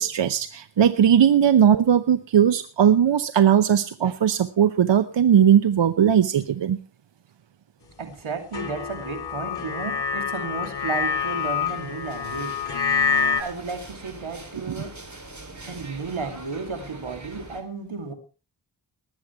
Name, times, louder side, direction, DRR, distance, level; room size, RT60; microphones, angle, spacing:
voice 1, 0.0-6.8 14.7-14.8, right 9 dB, 65° right, 13 dB, 0.8 m, -19 dB
voice 2, 8.0-12.6 13.4-15.0 15.6-18.1, right 4 dB, 90° right, 6 dB, 2.7 m, -33 dB
sound 1, 8.5-13.4, left 6 dB, 55° left, 2.5 m, -26 dB
sound 2, 10.7-17.6, right 2 dB, 35° right, 3.5 m, -43 dB
19.5 x 8.4 x 4.6 m, 0.35 s
cardioid pair, 55°, 47 cm